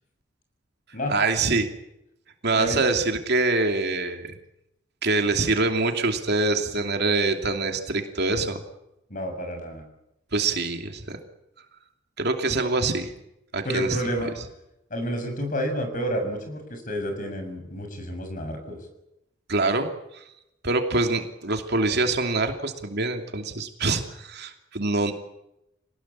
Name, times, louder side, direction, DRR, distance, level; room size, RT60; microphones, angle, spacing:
voice 1, 1.1-1.7 2.4-4.3 5.0-8.6 10.3-11.2 12.2-13.1 13.5-14.3 19.5-19.9 20.6-25.1, right 3 dB, 55° right, 5 dB, 2.8 m, -25 dB
voice 2, 9.1-9.8 13.6-14.3 14.9-18.8, equal, 45° left, 6 dB, 6.9 m, -30 dB
26.5 x 19.0 x 8.7 m, 0.85 s
head